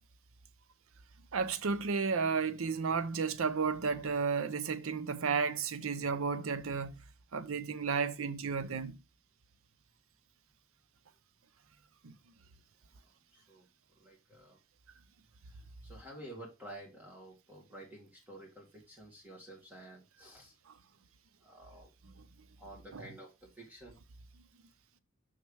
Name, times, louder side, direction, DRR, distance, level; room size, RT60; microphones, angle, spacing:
voice 1, 1.3-7.0 7.3-9.0 12.0-12.2 20.7-20.8 22.2-22.3 22.9-23.1, right 5 dB, 70° right, 0.6 m, -33 dB
voice 2, 13.3-13.7 14.0-14.6 15.4-20.6 21.4-21.9 22.6-24.0, right 1 dB, 10° right, 2.0 m, -51 dB
6.3 x 5.7 x 3.3 m
head